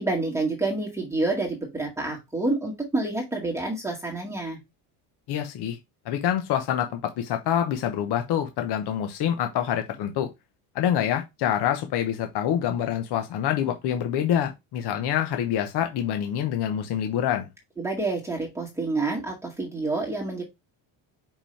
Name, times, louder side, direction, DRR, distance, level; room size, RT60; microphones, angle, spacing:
voice 1, 0.0-4.6 17.8-20.4, right 2 dB, 5° right, 1.9 m, -28 dB
voice 2, 5.3-5.8 6.0-10.3 10.7-17.5, left 10 dB, 65° left, 1.1 m, -26 dB
5.4 x 5.2 x 3.3 m
cardioid pair, 145°, 43 cm